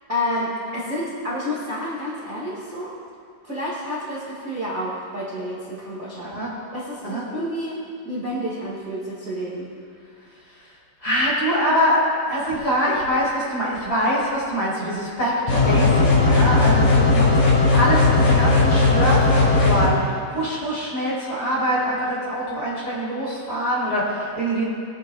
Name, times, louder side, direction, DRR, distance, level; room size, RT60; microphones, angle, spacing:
voice 1, 0.1-3.0 3.4-6.3 6.7-9.7, left 1 dB, 30° right, -8 dB, 1.6 m, -29 dB
voice 2, 11.0-24.6, equal, 25° left, -8 dB, 3.5 m, -24 dB
sound 1, 15.5-19.9, left 3 dB, 70° left, 5.2 m, -17 dB
22.0 x 11.0 x 2.4 m, 2.4 s
omnidirectional pair, 4.7 m